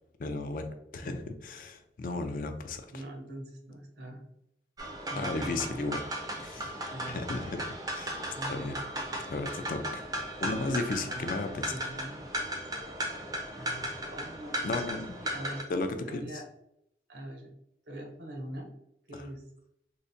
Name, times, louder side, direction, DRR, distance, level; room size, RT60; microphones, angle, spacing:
voice 1, 0.2-2.9 5.2-6.0 6.3-6.8 7.1-7.6 7.9-8.2 8.5-8.8 9.3-10.1 10.4-11.8 14.6-15.2 15.7-16.3 19.1-19.2, left 3 dB, 50° left, 7 dB, 0.3 m, -34 dB
voice 2, 2.9-4.2 5.1-5.8 6.9-7.2 8.3-8.8 10.4-11.3 11.7-12.5 13.5-14.9 15.2-15.6 16.1-16.4 17.1-17.5 17.9-18.7 19.1-19.4, right 1 dB, 75° right, 2 dB, 0.7 m, -43 dB
sound 1, 4.8-15.6, right 1 dB, 20° right, 0.4 m, -36 dB
3.7 x 2.1 x 2.5 m, 0.79 s
head